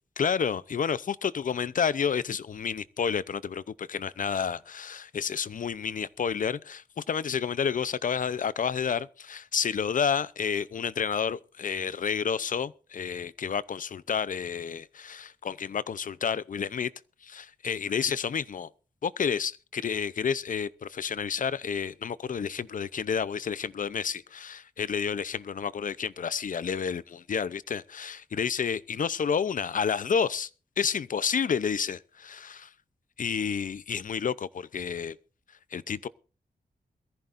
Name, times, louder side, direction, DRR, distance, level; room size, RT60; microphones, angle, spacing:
voice 1, 0.2-16.9 17.2-18.7 19.0-30.5 30.8-32.7 33.2-35.2 35.7-36.1, left 7 dB, 60° left, 0.6 m, -30 dB
22.5 x 14.5 x 2.6 m
wide cardioid pair, 95°, 16 cm